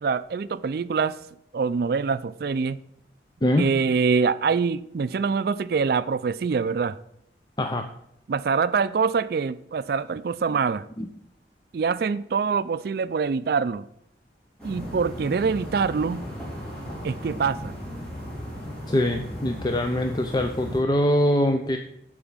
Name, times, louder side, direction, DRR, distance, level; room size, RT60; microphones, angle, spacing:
voice 1, 0.0-1.2 1.5-2.8 3.6-7.0 8.3-10.8 11.7-13.9 14.6-16.2 17.0-17.7, right 5 dB, 55° right, 0.4 m, -24 dB
sound 1, 14.6-20.8, equal, 5° left, 3.3 m, -36 dB
voice 2, 18.9-21.8, left 1 dB, 25° left, 0.6 m, -23 dB
10.5 x 4.9 x 7.2 m
head